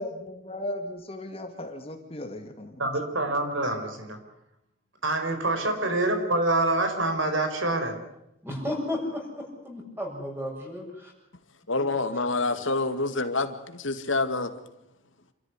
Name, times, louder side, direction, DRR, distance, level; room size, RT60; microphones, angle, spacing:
voice 1, 0.0-2.8 5.5-5.7, left 1 dB, 30° left, 5 dB, 2.3 m, -36 dB
voice 2, 2.8-4.2 5.0-8.0, right 2 dB, 75° right, 6 dB, 5.0 m, -26 dB
voice 3, 8.4-11.1 11.8-12.2, left 1 dB, 10° right, 0 dB, 7.4 m, -34 dB
voice 4, 11.7-14.5, left 3 dB, 75° left, 8 dB, 2.2 m, -27 dB
28.0 x 14.0 x 9.8 m, 0.84 s
head